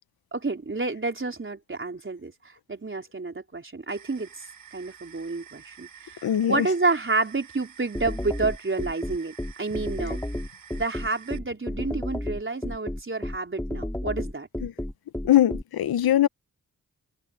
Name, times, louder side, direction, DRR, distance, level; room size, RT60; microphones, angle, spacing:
voice 1, 0.3-4.3 4.7-10.2 10.7-14.5, right 3 dB, 35° right, 4.2 m, -29 dB
sound 1, 3.9-11.4, right 8 dB, 65° right, 4.3 m, -49 dB
voice 2, 6.2-6.7 14.6-14.7 15.2-16.3, left 12 dB, 85° left, 0.9 m, -21 dB
sound 2, 7.9-15.6, left 1 dB, 10° left, 4.3 m, -31 dB
open air
cardioid pair, 60°, 36 cm